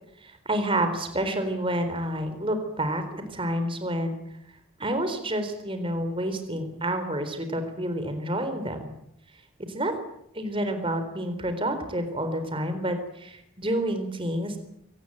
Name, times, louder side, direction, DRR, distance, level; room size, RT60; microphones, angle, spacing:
voice 1, 0.2-4.2 4.8-8.9 9.6-9.9 10.3-14.6, right 1 dB, 25° right, 8 dB, 4.0 m, -29 dB
24.0 x 19.0 x 9.0 m, 0.76 s
head